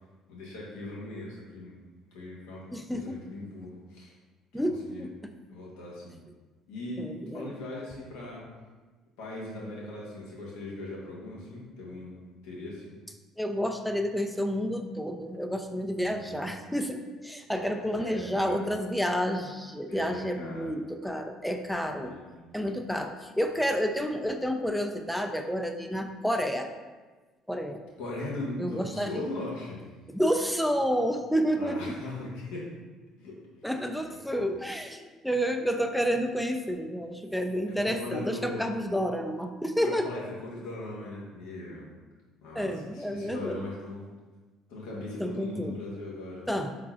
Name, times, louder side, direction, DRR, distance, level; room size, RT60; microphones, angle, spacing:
voice 1, 0.3-1.8 2.1-4.1 4.8-5.1 5.5-6.2 6.7-7.1 7.3-8.4 9.2-12.1 12.4-12.9 16.0-16.5 17.5-18.7 19.9-20.7 22.0-22.5 28.0-29.8 31.6-32.7 33.2-33.7 34.0-34.5 37.7-38.6 39.8-41.9 42.4-44.0 44.7-46.5, left 2 dB, 75° left, -5 dB, 1.1 m, -39 dB
voice 2, 2.7-3.2 4.5-5.3 7.0-7.5 13.4-22.1 22.5-26.7 27.5-27.8 28.6-29.2 30.1-31.9 33.6-40.1 42.6-43.7 45.2-45.7 46.5-46.7, equal, ahead, 5 dB, 0.4 m, -30 dB
4.6 x 3.8 x 2.4 m, 1.3 s
hypercardioid pair, 65°, 0 cm